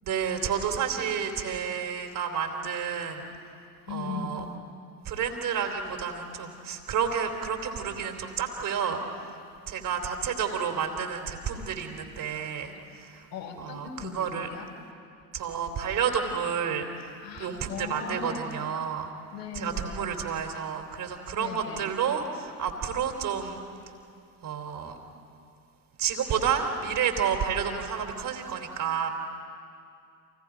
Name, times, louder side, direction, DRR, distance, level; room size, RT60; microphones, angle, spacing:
voice 1, 0.0-3.3 3.9-4.4 5.1-9.0 9.7-13.3 13.6-14.5 15.3-19.1 19.6-23.6 24.4-25.0 26.0-29.1, right 7 dB, 40° right, 4 dB, 3.6 m, -30 dB
voice 2, 3.9-4.4 13.3-14.7 17.2-18.4 19.3-20.3 21.4-21.9, left 6 dB, 75° left, -1 dB, 5.3 m, -38 dB
29.5 x 27.5 x 5.2 m, 2.5 s
figure-of-eight pair, 65°, 49 cm